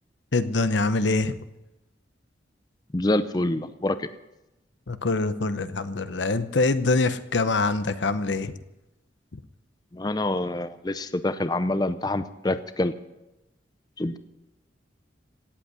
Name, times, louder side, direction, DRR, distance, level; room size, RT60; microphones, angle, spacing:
voice 1, 0.3-1.4 4.9-8.5 9.3-9.4, left 3 dB, 80° left, 13 dB, 0.8 m, -24 dB
voice 2, 2.9-4.1 9.9-12.9 14.0-14.2, left 2 dB, 20° left, 12 dB, 0.5 m, -26 dB
17.5 x 8.2 x 9.5 m, 0.97 s
head